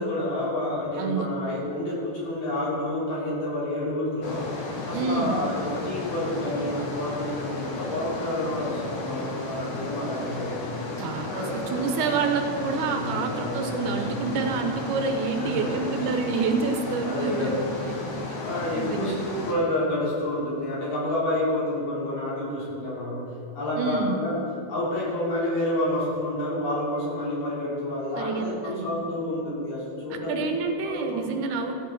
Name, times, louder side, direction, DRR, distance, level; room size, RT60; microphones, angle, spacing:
voice 1, 0.0-4.5 4.8-10.6 11.3-11.6 12.9-14.3 15.3-16.1 17.0-17.7 18.4-19.2 19.4-23.2 23.5-24.4 24.7-30.4 30.8-31.2, left 1 dB, 85° left, -8 dB, 5.1 m, -29 dB
voice 2, 1.0-1.3 4.9-5.4 11.0-18.0 18.7-19.2 23.8-24.2 28.2-28.9 30.1-31.7, right 4 dB, 75° right, 5 dB, 2.2 m, -28 dB
sound 1, 4.2-19.5, left 2 dB, 60° left, 2.5 m, -34 dB
15.0 x 8.4 x 4.5 m, 2.4 s
omnidirectional pair, 3.7 m